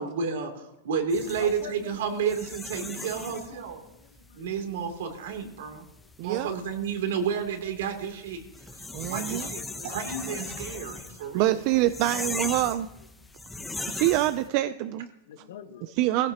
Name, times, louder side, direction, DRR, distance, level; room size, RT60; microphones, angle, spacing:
voice 1, 0.0-3.8 4.3-5.8 6.2-8.4 8.7-8.8 9.1-11.6, right 6 dB, 80° right, 4 dB, 2.9 m, -31 dB
sound 1, 1.1-14.5, left 2 dB, 5° left, 0.9 m, -39 dB
voice 2, 1.4-2.0 3.5-4.5 5.2-5.3 6.5-6.6 9.4-11.5 13.6-14.1 15.3-16.3, left 9 dB, 75° left, 8 dB, 1.4 m, -47 dB
voice 3, 6.2-6.5 8.9-9.5 11.3-12.9 13.9-15.1 15.9-16.3, right 15 dB, 45° right, 12 dB, 0.5 m, -25 dB
19.5 x 16.0 x 2.9 m, 0.88 s
supercardioid pair, 155°, 0 cm